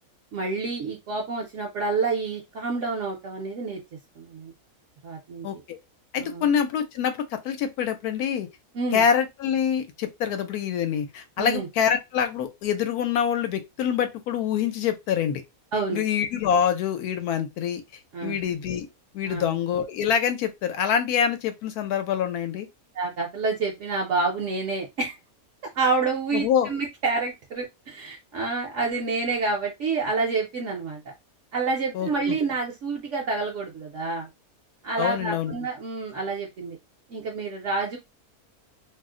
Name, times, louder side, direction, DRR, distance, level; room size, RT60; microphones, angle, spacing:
voice 1, 0.3-3.8 4.2-4.5 5.0-5.5 6.2-6.5 8.7-9.0 11.4-11.7 15.7-16.0 18.1-18.4 19.2-19.5 22.9-25.1 25.7-31.0 31.5-34.3 34.8-36.8 37.1-38.0, right 4 dB, 65° right, 0.9 m, -28 dB
voice 2, 5.4-5.8 6.1-8.5 8.9-15.4 15.9-17.8 18.2-18.9 19.1-22.7 26.3-26.7 31.9-32.4 35.0-35.5, left 8 dB, 85° left, 1.1 m, -25 dB
2.7 x 2.0 x 3.6 m
omnidirectional pair, 1.6 m